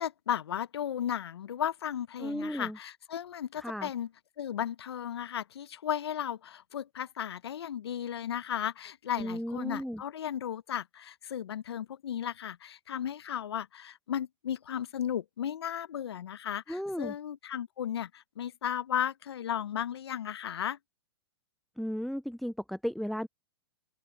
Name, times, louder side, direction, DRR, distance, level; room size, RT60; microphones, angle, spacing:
voice 1, 0.0-4.1 4.4-20.8, left 9 dB, 75° left, 0.9 m, -35 dB
voice 2, 2.2-2.8 3.6-3.9 9.2-10.0 16.7-17.1 21.8-23.3, equal, ahead, 0.4 m, -35 dB
open air
hypercardioid pair, 110°, 14 cm